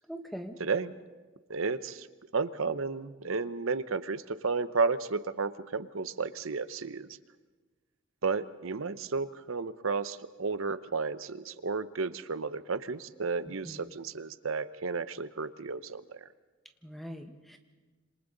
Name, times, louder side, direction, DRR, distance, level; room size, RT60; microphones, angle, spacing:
voice 1, 0.1-0.6 13.6-13.9 16.8-17.6, equal, ahead, 5 dB, 1.2 m, -42 dB
voice 2, 0.6-0.9 1.5-2.1 2.3-7.1 8.2-16.3, right 4 dB, 75° right, 14 dB, 0.8 m, -32 dB
27.0 x 26.5 x 4.0 m, 1.3 s
head